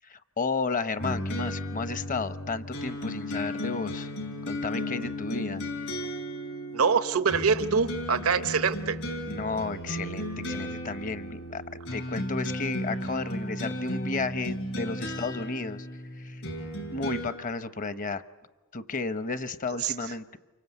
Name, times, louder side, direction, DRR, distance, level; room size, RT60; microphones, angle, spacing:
voice 1, 0.0-4.1 4.4-5.6 8.4-8.5 9.2-11.6 11.9-15.9 16.2-16.4 16.9-18.2 18.7-20.4, left 4 dB, 40° left, 12 dB, 0.9 m, -33 dB
sound 1, 1.0-17.3, left 1 dB, 75° left, 5.2 m, -35 dB
voice 2, 6.7-9.0 19.8-19.9, right 5 dB, 85° right, 11 dB, 0.9 m, -24 dB
28.5 x 24.5 x 8.2 m, 1.2 s
head